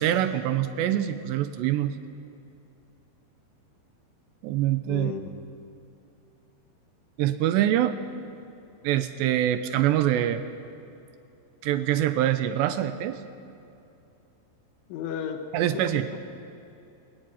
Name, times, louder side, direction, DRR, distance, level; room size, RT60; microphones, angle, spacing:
voice 1, 0.0-2.0 4.4-5.1 7.2-7.9 8.8-10.4 11.6-13.2 15.5-16.1, right 12 dB, 80° right, 10 dB, 2.7 m, -24 dB
voice 2, 4.9-5.3 14.9-15.4 15.7-16.2, left 8 dB, 80° left, 5 dB, 3.6 m, -34 dB
21.0 x 18.0 x 9.7 m, 2.7 s
omnidirectional pair, 5.5 m